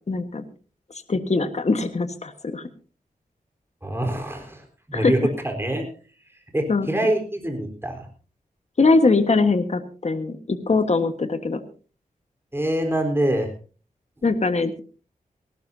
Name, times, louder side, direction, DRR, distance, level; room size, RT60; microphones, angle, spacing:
voice 1, 0.1-0.4 1.1-2.6 4.9-5.3 6.7-6.9 8.8-11.6 14.2-14.8, left 3 dB, 50° left, 8 dB, 1.5 m, -21 dB
voice 2, 3.8-5.8 6.5-8.1 12.5-13.5, right 1 dB, 15° right, 3 dB, 4.1 m, -25 dB
19.5 x 18.0 x 2.8 m, 0.37 s
wide cardioid pair, 80°, 15 cm